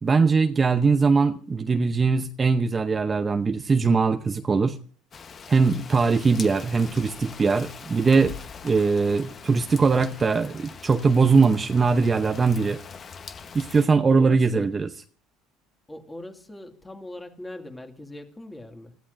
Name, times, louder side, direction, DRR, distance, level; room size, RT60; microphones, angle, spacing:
voice 1, 0.0-4.8 5.5-8.3 8.6-12.8 13.5-14.9, right 4 dB, 25° right, 0.7 m, -21 dB
Rain, 5.1-13.9, left 6 dB, 35° left, 1.1 m, -42 dB
voice 2, 14.2-14.7 15.9-19.0, left 1 dB, 10° left, 2.2 m, -40 dB
29.5 x 14.0 x 2.6 m
supercardioid pair, 100°, 0 cm